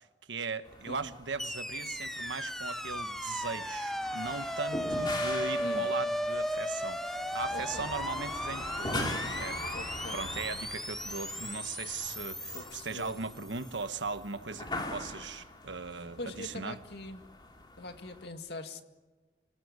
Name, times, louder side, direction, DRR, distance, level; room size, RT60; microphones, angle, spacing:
voice 1, 0.0-9.8 10.1-16.8, right 4 dB, 85° right, 10 dB, 1.4 m, -39 dB
sound 1, 0.6-18.3, left 2 dB, 25° left, 3.2 m, -42 dB
sound 2, 1.4-13.6, equal, ahead, 1.1 m, -36 dB
voice 2, 5.6-5.9 7.5-7.9 9.7-10.2 12.5-13.1 16.2-17.2 17.8-18.8, left 2 dB, 65° left, 6 dB, 2.1 m, -42 dB
27.5 x 18.5 x 9.7 m, 1.3 s
head